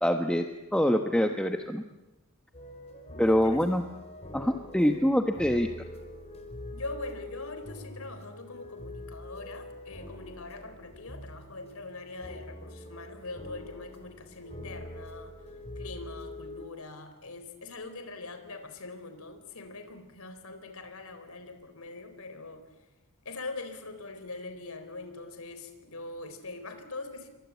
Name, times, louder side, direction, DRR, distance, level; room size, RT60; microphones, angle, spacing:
voice 1, 0.0-0.5 0.7-1.8 3.2-3.8 4.3-5.7, equal, 5° left, 5 dB, 1.2 m, -25 dB
sound 1, 2.5-16.7, left 1 dB, 30° left, 4.3 m, -44 dB
voice 2, 3.1-3.6 6.7-15.3 15.8-22.6 23.2-27.3, left 3 dB, 75° left, 8 dB, 4.2 m, -42 dB
28.5 x 24.0 x 8.4 m, 1.0 s
head